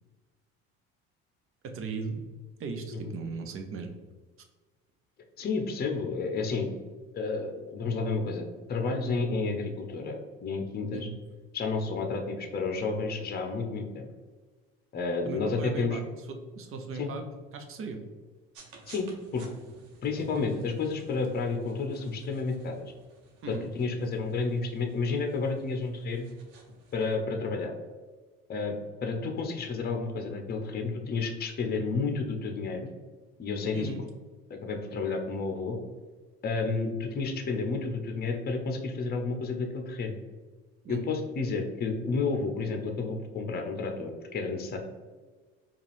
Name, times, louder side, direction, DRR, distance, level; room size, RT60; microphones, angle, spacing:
voice 1, 1.6-2.2 2.6-3.9 10.9-11.2 15.2-17.2 17.5-18.0 23.4-23.7 33.7-34.0 40.8-41.1, right 4 dB, 45° right, 5 dB, 0.8 m, -37 dB
voice 2, 5.4-6.7 7.1-11.1 11.5-14.1 14.9-16.0 16.9-17.1 18.9-19.1 19.3-19.4 20.0-22.8 23.5-26.3 26.9-27.7 28.5-32.9 33.4-33.9 34.5-35.8 36.4-40.2 40.9-44.8, left 4 dB, 30° left, 4 dB, 0.7 m, -31 dB
sound 1, 18.5-27.1, right 3 dB, 75° right, 1.0 m, -54 dB
4.8 x 2.5 x 3.4 m, 1.4 s
supercardioid pair, 85°, 30 cm